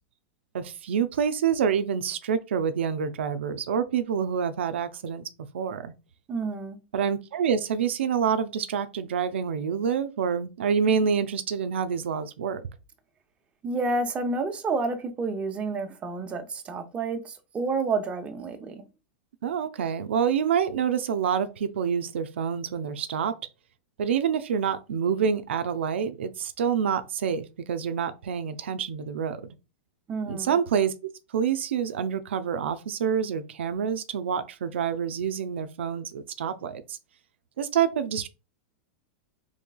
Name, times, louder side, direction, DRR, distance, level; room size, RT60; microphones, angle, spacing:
voice 1, 0.5-5.3 5.5-5.9 6.9-12.6 19.4-23.4 24.0-29.5 30.3-37.0 37.6-38.3, right 7 dB, 90° right, 0.4 m, -27 dB
voice 2, 6.3-6.8 13.6-18.8 30.1-30.6, right 3 dB, 20° right, 0.6 m, -29 dB
3.8 x 3.2 x 2.3 m
supercardioid pair, 140°, 6 cm